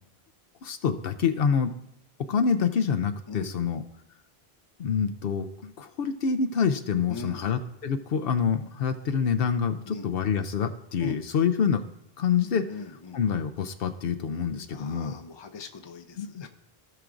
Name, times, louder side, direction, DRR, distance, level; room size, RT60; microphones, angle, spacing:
voice 1, 0.6-1.7 2.3-3.8 4.8-11.8 12.2-12.7 13.1-15.1 16.2-16.4, left 6 dB, 70° left, 7 dB, 0.8 m, -26 dB
voice 2, 3.3-3.8 7.1-7.6 9.9-10.1 11.0-11.2 12.7-13.2 14.7-16.5, left 4 dB, 30° left, 7 dB, 0.6 m, -40 dB
16.5 x 5.9 x 2.5 m, 0.81 s
omnidirectional pair, 1.1 m